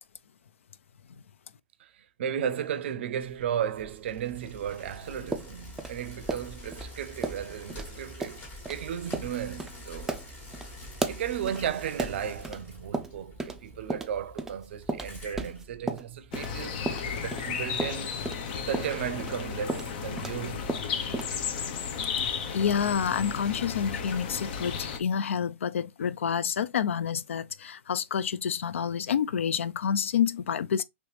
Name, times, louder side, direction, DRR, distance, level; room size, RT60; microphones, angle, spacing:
voice 1, 2.2-8.4 8.7-10.2 11.1-18.2 18.6-20.7, right 9 dB, 65° right, 0.5 m, -34 dB
Bicycle, 3.2-16.4, left 1 dB, 30° left, 1.5 m, -46 dB
sound 1, 5.3-6.9 7.2-7.4 7.7-7.9 8.2-8.4 8.6-8.8 9.1-9.3 9.6-9.7 10.1-12.6 12.9-13.6 13.9-16.5 16.9-20.4 20.7-21.4, right 3 dB, 5° right, 0.4 m, -34 dB
sound 2, 16.3-25.0, left 6 dB, 50° left, 0.6 m, -34 dB
voice 2, 22.5-30.8, left 7 dB, 80° left, 0.3 m, -28 dB
3.1 x 2.9 x 3.1 m
hypercardioid pair, 130°, 7 cm